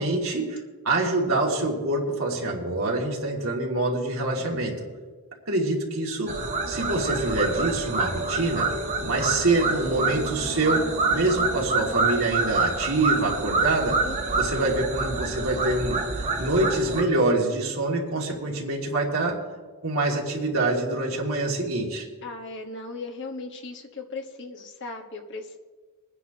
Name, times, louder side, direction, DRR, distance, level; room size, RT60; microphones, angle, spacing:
voice 1, 0.0-4.8 5.5-6.3 6.7-8.7 9.0-14.0 14.3-19.4 19.8-22.1, right 2 dB, 70° right, -2 dB, 2.6 m, -25 dB
sound 1, 6.3-17.0, right 3 dB, 35° right, 1.3 m, -27 dB
voice 2, 14.0-14.4 22.2-25.6, left 3 dB, 55° left, 2 dB, 1.5 m, -37 dB
23.0 x 9.9 x 3.0 m, 1.4 s
head